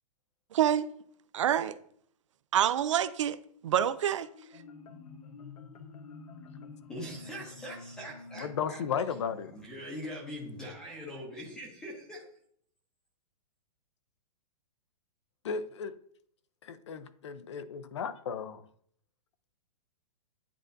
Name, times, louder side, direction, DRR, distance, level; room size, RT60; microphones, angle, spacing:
voice 1, 0.5-0.9 1.3-1.8 2.5-3.4 3.6-4.3, right 10 dB, 50° right, 0.4 m, -26 dB
Marimba xylophone, 4.2-9.7, left 4 dB, 70° left, 0.9 m, -49 dB
voice 2, 6.9-8.8 9.5-12.3, equal, 5° left, 0.8 m, -42 dB
voice 3, 8.3-9.5 15.4-16.0 16.6-18.6, left 6 dB, 50° left, 0.5 m, -35 dB
10.0 x 3.8 x 2.6 m
hypercardioid pair, 180°, 20 cm